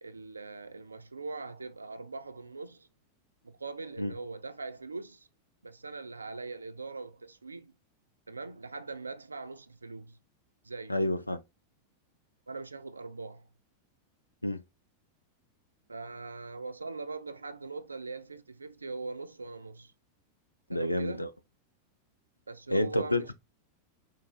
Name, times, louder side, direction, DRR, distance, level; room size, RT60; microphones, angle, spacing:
voice 1, 0.0-2.9 3.4-5.3 5.6-7.8 8.3-10.2 10.6-11.0 12.5-13.5 15.9-19.9 20.7-21.3 22.5-23.3, right 3 dB, 80° right, 0.4 m, -41 dB
voice 2, 10.9-11.4 14.4-14.6 20.7-21.3 22.7-23.3, left 1 dB, 85° left, 0.4 m, -29 dB
4.6 x 3.5 x 2.2 m
figure-of-eight pair, 90°, 0 cm